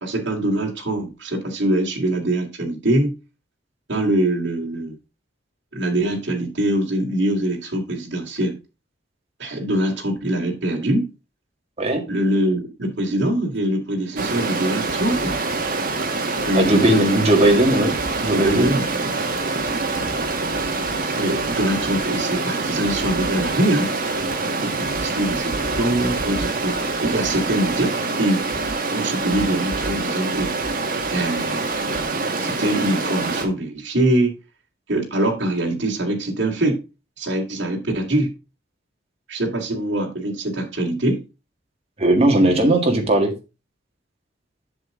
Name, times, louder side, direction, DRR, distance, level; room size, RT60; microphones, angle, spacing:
voice 1, 0.0-3.1 3.9-5.0 5.7-8.6 9.4-11.1 12.1-15.4 16.5-17.2 18.3-19.7 21.1-23.9 24.6-26.8 27.1-28.4 28.9-30.5 31.1-31.7 32.4-34.4 34.9-36.8 37.2-38.3 39.3-41.2, right 1 dB, 65° right, 2.3 m, -23 dB
Stream, 14.2-33.4, right 3 dB, 50° right, 1.5 m, -25 dB
voice 2, 16.6-18.0 18.2-18.8 42.0-43.3, right 1 dB, 35° right, 1.8 m, -17 dB
7.7 x 6.8 x 3.7 m
head